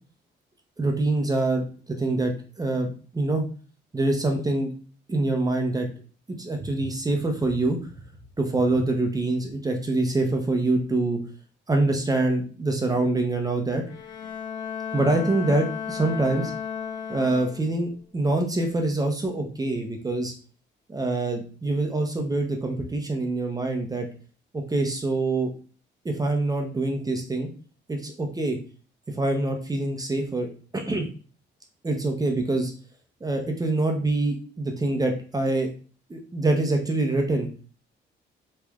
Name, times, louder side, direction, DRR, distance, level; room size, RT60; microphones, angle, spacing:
voice 1, 0.8-3.4 3.9-4.7 5.1-5.9 6.4-7.8 8.4-11.2 11.7-13.8 14.9-16.5 17.1-20.3 20.9-24.1 24.5-25.5 26.0-27.5 27.9-28.6 29.2-31.0 31.8-32.7 33.2-35.7 36.1-37.5, right 2 dB, 20° right, 2 dB, 0.6 m, -25 dB
Bowed string instrument, 13.8-17.9, left 7 dB, 75° left, 0.7 m, -34 dB
3.2 x 3.1 x 2.3 m, 0.39 s
cardioid pair, 90°, 20 cm